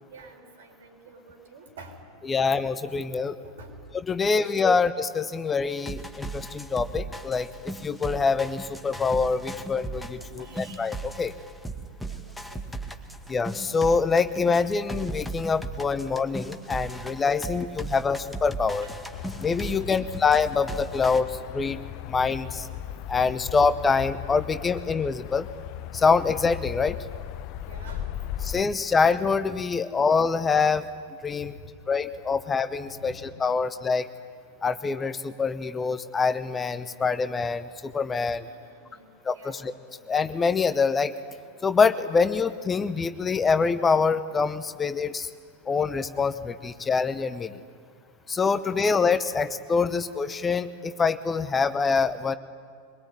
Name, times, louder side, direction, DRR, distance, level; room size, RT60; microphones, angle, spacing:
voice 1, 0.1-1.9 3.4-3.7 4.1-4.8 10.2-10.9 12.1-12.6 17.3-17.5 18.8-18.9 19.7-20.1 22.2-22.7 27.7-28.3 31.4-31.7 32.8-33.5 38.4-39.7 48.6-48.9, right 2 dB, 60° right, 3 dB, 5.3 m, -49 dB
voice 2, 2.3-3.4 4.1-11.3 13.3-18.9 19.4-21.8 22.1-22.7 23.1-25.5 25.9-27.0 28.4-30.8 31.2-31.5 31.9-33.1 33.4-34.1 34.6-38.5 39.2-39.7 40.1-41.1 41.6-45.3 45.7-47.6 48.3-52.4, left 5 dB, 15° left, 12 dB, 0.9 m, -25 dB
sound 1, 5.7-21.2, right 2 dB, ahead, 2.0 m, -37 dB
sound 2, 19.1-28.6, left 11 dB, 45° left, 0.8 m, -37 dB
23.5 x 22.0 x 9.9 m, 2.2 s
figure-of-eight pair, 90°, 0 cm